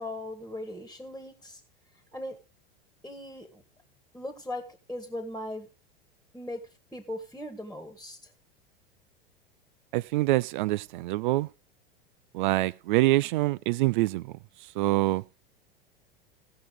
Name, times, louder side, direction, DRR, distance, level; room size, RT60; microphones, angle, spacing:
voice 1, 0.0-1.6 2.1-2.4 3.0-3.6 4.1-5.7 6.3-6.6 6.9-8.3, left 1 dB, 5° left, 1.7 m, -38 dB
voice 2, 9.9-11.5 12.3-14.3 14.8-15.2, right 18 dB, 55° right, 0.5 m, -25 dB
15.5 x 6.1 x 4.9 m
figure-of-eight pair, 85°, 29 cm